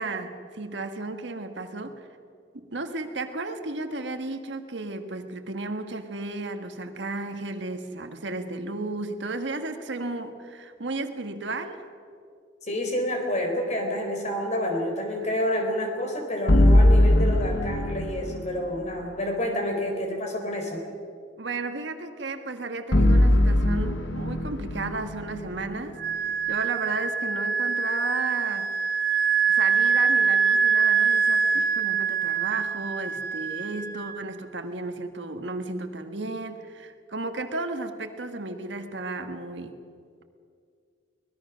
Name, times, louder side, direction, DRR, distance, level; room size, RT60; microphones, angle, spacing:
voice 1, 0.0-2.1 2.5-11.9 21.4-26.0 26.5-28.7 29.5-39.8, right 2 dB, 70° right, 7 dB, 1.6 m, -34 dB
voice 2, 12.6-20.8, left 1 dB, 40° left, 3 dB, 4.2 m, -28 dB
sound 1, 16.5-18.7 22.9-26.1, left 1 dB, 85° left, 1.6 m, -20 dB
Wind instrument woodwind instrument, 26.0-34.3, right 6 dB, 55° right, 2.3 m, -24 dB
24.0 x 20.0 x 6.3 m, 2.2 s
head